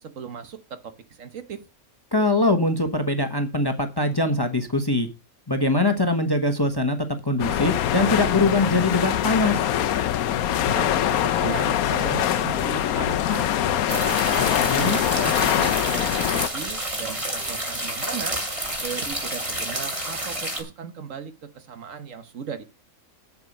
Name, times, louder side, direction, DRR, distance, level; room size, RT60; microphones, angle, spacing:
voice 1, 0.0-1.6 10.7-14.3 14.7-18.4 18.8-22.6, right 7 dB, 65° right, 10 dB, 1.4 m, -36 dB
voice 2, 2.1-5.1 5.5-9.7 14.6-15.0, left 2 dB, 20° left, 7 dB, 1.0 m, -22 dB
sound 1, 7.4-16.5, left 11 dB, 80° left, 1.2 m, -23 dB
sound 2, 13.9-20.6, right 1 dB, 20° right, 2.8 m, -29 dB
8.5 x 7.8 x 5.3 m, 0.30 s
omnidirectional pair, 1.5 m